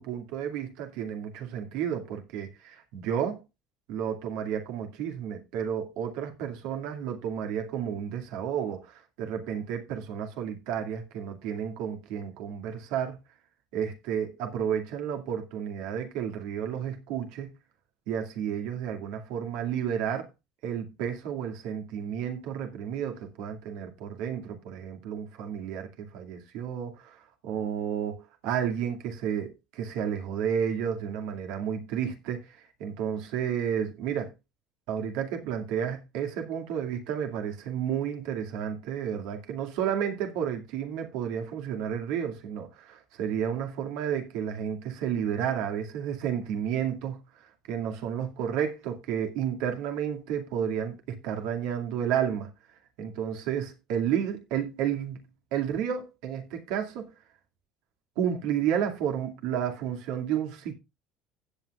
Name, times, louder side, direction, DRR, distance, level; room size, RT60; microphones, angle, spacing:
voice 1, 0.0-3.4 3.9-13.2 13.7-17.5 18.1-20.3 20.6-34.3 34.9-52.5 53.0-55.2 55.5-57.1 58.2-60.7, right 8 dB, 75° right, 2.3 m, -31 dB
16.5 x 8.2 x 2.4 m
hypercardioid pair, 75°, 0 cm